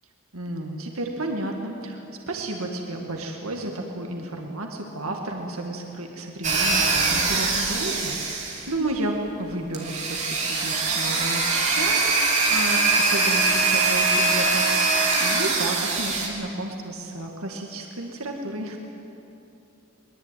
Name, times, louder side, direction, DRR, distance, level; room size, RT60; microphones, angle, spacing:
voice 1, 0.3-18.8, right 2 dB, 80° right, 2 dB, 2.1 m, -32 dB
sound 1, 6.4-8.8 9.7-16.3, right 3 dB, 30° right, 3.5 m, -22 dB
22.5 x 21.5 x 9.2 m, 2.9 s
head